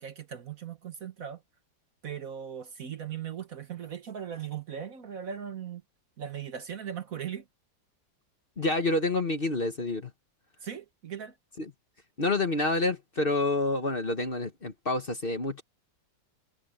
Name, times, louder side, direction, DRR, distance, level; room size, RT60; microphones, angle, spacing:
voice 1, 0.0-1.4 2.0-5.8 6.2-7.5 10.6-11.4, right 8 dB, 50° right, 1.4 m, -38 dB
voice 2, 8.6-10.1 11.6-11.7 12.2-15.6, left 2 dB, 35° left, 1.4 m, -28 dB
omnidirectional pair, 2.0 m